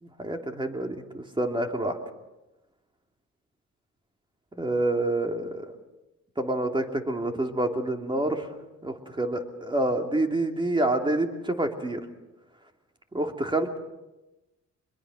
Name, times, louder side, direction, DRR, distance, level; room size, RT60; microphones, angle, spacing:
voice 1, 0.0-2.0 4.6-5.7 6.4-8.5 8.8-12.0 13.1-13.8, right 1 dB, 15° right, 4 dB, 2.9 m, -27 dB
25.0 x 22.0 x 6.4 m, 1.0 s
cardioid pair, 90°, 30 cm